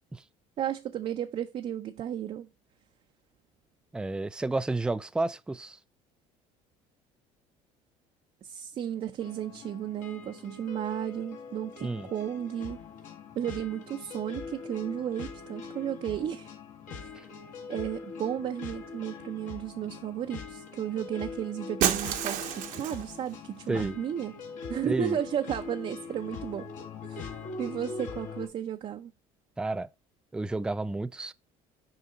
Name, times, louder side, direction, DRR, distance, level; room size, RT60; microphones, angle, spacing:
voice 1, 0.6-2.5 8.4-12.8 13.4-16.5 17.0-17.2 17.7-24.4 24.7-26.7 27.1-29.1, right 10 dB, 45° right, 0.7 m, -34 dB
voice 2, 3.9-5.8 11.8-12.1 17.1-17.2 23.7-23.9 24.8-25.2 29.6-29.9 30.3-31.3, right 2 dB, 5° right, 0.4 m, -31 dB
sound 1, 9.2-28.5, left 5 dB, 60° left, 1.8 m, -42 dB
Shatter, 21.8-23.2, right 11 dB, 65° right, 1.1 m, -29 dB
6.5 x 4.9 x 4.3 m
supercardioid pair, 100°, 14 cm